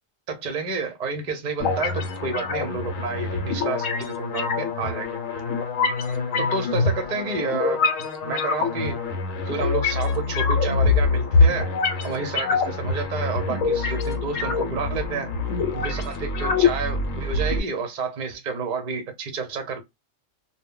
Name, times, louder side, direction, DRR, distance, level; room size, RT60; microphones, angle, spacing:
voice 1, 0.3-5.2 6.4-7.8 8.2-8.9 9.5-11.7 12.0-15.3 15.7-19.8, right 4 dB, 45° right, 0.6 m, -30 dB
sound 1, 1.6-17.6, left 4 dB, 80° left, 1.0 m, -24 dB
2.1 x 2.1 x 3.5 m
omnidirectional pair, 1.3 m